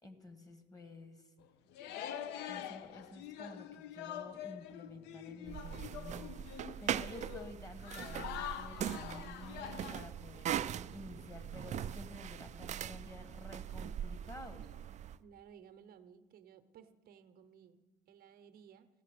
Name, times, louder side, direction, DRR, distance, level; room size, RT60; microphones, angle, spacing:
voice 1, 0.0-1.2 2.4-14.6, left 2 dB, 20° left, 8 dB, 1.6 m, -51 dB
sound 1, 1.4-1.5 1.7-10.1, left 10 dB, 85° left, 0.5 m, -45 dB
sound 2, 4.8-14.9, left 3 dB, 65° left, 1.4 m, -67 dB
sound 3, 5.5-15.2, right 10 dB, 45° right, 0.4 m, -41 dB
voice 2, 15.2-18.9, right 8 dB, 65° right, 9 dB, 0.8 m, -58 dB
16.0 x 6.8 x 6.7 m, 1.2 s
cardioid pair, 110°, 17 cm